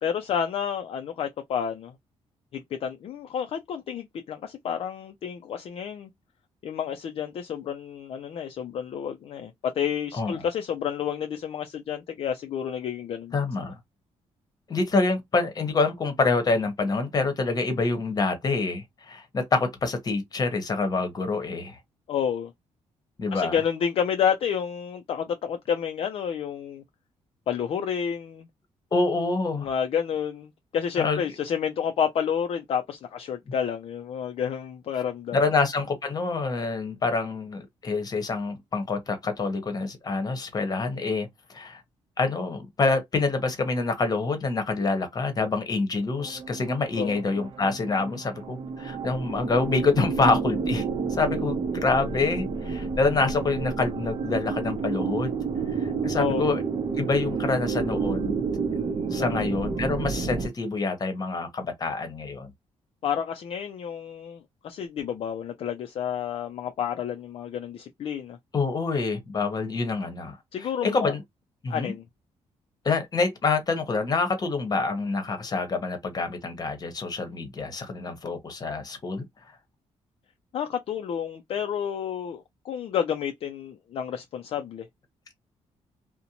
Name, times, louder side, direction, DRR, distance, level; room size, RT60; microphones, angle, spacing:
voice 1, 0.0-1.9 2.5-6.1 6.6-13.4 22.1-22.5 23.3-26.8 27.5-28.5 29.6-35.4 47.0-47.2 56.1-56.5 59.2-59.5 63.0-68.4 70.5-71.1 71.7-72.0 80.5-84.9, left 8 dB, 55° left, 0.4 m, -30 dB
voice 2, 10.1-10.4 13.3-13.7 14.7-21.8 23.2-23.6 28.9-29.7 31.0-31.2 35.3-41.8 42.2-50.8 51.2-55.4 55.8-56.6 57.0-58.8 59.1-62.5 68.5-70.4 70.8-71.2 71.6-71.9 72.8-79.2, left 3 dB, 35° left, 0.9 m, -26 dB
sound 1, 46.2-60.5, right 5 dB, 45° right, 0.6 m, -30 dB
2.6 x 2.1 x 2.8 m
cardioid pair, 110°, 12 cm